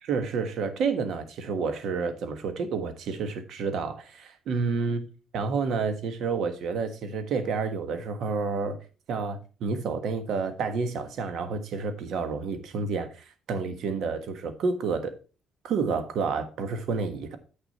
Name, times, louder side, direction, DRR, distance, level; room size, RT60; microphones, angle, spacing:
voice 1, 0.0-5.1 5.3-8.8 9.1-15.1 15.6-17.4, right 5 dB, 70° right, 1.4 m, -29 dB
8.3 x 6.6 x 4.2 m
cardioid pair, 80°, 0 cm